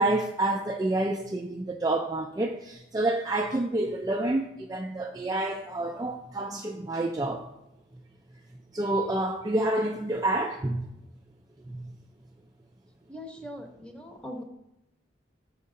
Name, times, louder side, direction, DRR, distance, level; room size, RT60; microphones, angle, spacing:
voice 1, 0.0-7.5 8.7-10.9 11.7-11.9, right 2 dB, 20° right, 0.3 m, -28 dB
voice 2, 13.1-14.4, equal, 5° left, 0.7 m, -41 dB
6.4 x 5.4 x 3.7 m
head